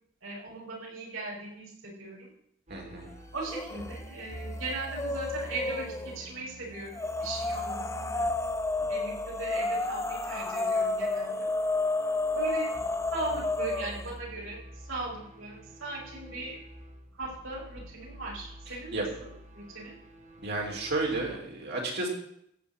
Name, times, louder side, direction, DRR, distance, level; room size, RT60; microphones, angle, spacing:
voice 1, 0.2-2.3 3.3-8.3 8.9-11.5 12.3-12.7 13.1-16.6 17.1-19.1 19.5-19.9, right 2 dB, 90° right, -5 dB, 6.0 m, -38 dB
sound 1, 2.7-21.4, right 1 dB, 40° right, 1.8 m, -47 dB
voice 2, 2.7-3.1 18.9-19.0 20.4-22.1, right 2 dB, 55° right, 0 dB, 3.4 m, -32 dB
sound 2, 3.4-4.0 4.3-6.2 6.9-14.1, left 2 dB, 15° left, 0.7 m, -31 dB
15.0 x 5.7 x 8.8 m, 0.73 s
head